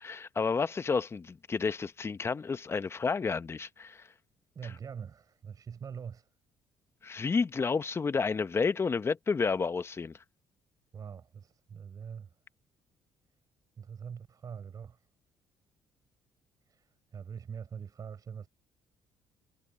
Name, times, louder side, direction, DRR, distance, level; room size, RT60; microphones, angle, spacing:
voice 1, 0.0-4.1 7.0-10.1, left 5 dB, 30° left, 1.0 m, -30 dB
voice 2, 4.5-6.3 10.9-12.3 13.8-15.0 16.7-18.5, right 7 dB, 50° right, 6.5 m, -43 dB
supercardioid pair, 75°, 8 cm